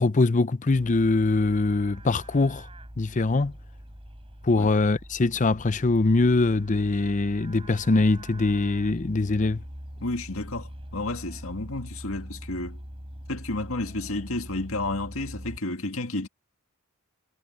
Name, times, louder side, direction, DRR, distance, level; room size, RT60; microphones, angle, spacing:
voice 1, 0.0-2.7 3.0-3.5 4.4-9.6, left 3 dB, 35° left, 0.6 m, -23 dB
Livestock farm animals working animals, 0.7-15.6, equal, 25° right, 7.7 m, -43 dB
voice 2, 10.0-12.8 13.3-16.3, left 2 dB, 65° left, 2.1 m, -31 dB
head